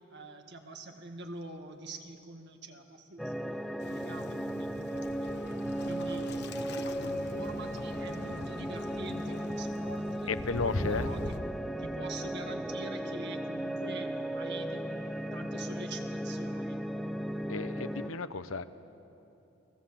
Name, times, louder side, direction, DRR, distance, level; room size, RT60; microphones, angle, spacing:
voice 1, 0.1-5.3 5.8-6.3 6.8-10.3 10.8-16.8, right 2 dB, 55° right, 5 dB, 2.0 m, -46 dB
sound 1, 3.2-18.1, right 1 dB, ahead, 0.6 m, -36 dB
Waves surf, 3.8-11.4, left 2 dB, 55° left, 1.2 m, -41 dB
voice 2, 10.3-11.1 17.5-18.6, left 4 dB, 80° left, 12 dB, 1.0 m, -34 dB
29.5 x 20.0 x 7.6 m, 2.9 s
head